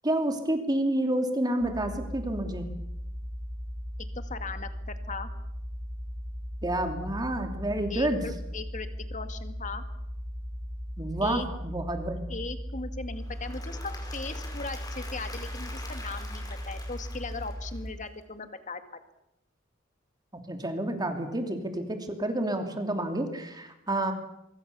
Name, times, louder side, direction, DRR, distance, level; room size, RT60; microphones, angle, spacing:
voice 1, 0.0-2.7 6.6-8.2 11.0-12.2 20.5-24.1, right 1 dB, 20° right, 5 dB, 3.0 m, -29 dB
sound 1, 1.6-17.9, equal, 5° left, 7.4 m, -38 dB
voice 2, 4.1-5.3 7.9-9.8 11.2-11.5 12.3-18.8, left 3 dB, 40° left, 8 dB, 2.2 m, -38 dB
Applause / Crowd, 13.2-18.1, left 2 dB, 20° left, 5.3 m, -45 dB
24.0 x 24.0 x 7.0 m, 0.84 s
head